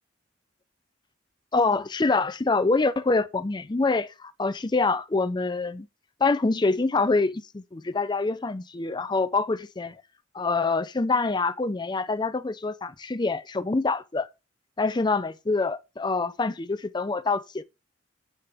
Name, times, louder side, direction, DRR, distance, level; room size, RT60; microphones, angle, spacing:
voice 1, 1.5-5.9 6.2-9.9 10.3-14.3 14.8-17.6, left 3 dB, 20° left, 0.5 m, -25 dB
10.0 x 8.5 x 3.5 m
head